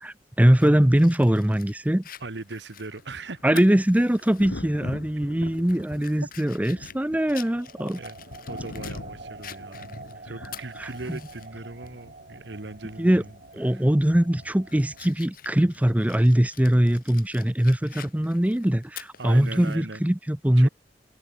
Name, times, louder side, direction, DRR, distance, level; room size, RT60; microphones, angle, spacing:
voice 1, 0.0-2.0 3.4-8.0 10.8-11.2 13.0-13.2 13.5-20.7, right 1 dB, 10° right, 0.6 m, -22 dB
Fire, 0.6-4.5 4.9-5.0 5.5-9.0 9.4-11.5 11.9-12.0 13.5-13.7 14.2-19.8, left 11 dB, 55° left, 1.9 m, -47 dB
voice 2, 2.2-3.6 7.9-8.2 8.5-13.3 13.6-13.9 19.2-20.0 20.6-20.7, right 3 dB, 75° right, 1.5 m, -39 dB
sound 1, 2.7-6.3 6.6-15.1, right 3 dB, 50° right, 2.8 m, -47 dB
Thunder, 2.9-16.6 18.2-18.4, left 2 dB, 90° left, 1.1 m, -44 dB
head